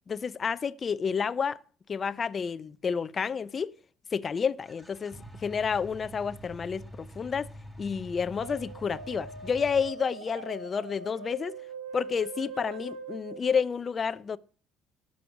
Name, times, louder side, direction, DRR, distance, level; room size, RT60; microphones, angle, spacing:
voice 1, 0.1-1.6 1.9-3.7 4.1-7.5 7.8-11.6 11.9-14.4, left 6 dB, 40° left, 0.7 m, -30 dB
sound 1, 4.6-9.9, equal, 10° right, 4.3 m, -46 dB
sound 2, 8.4-13.7, right 3 dB, 80° right, 1.6 m, -42 dB
17.0 x 6.5 x 5.9 m
hypercardioid pair, 55°, 0 cm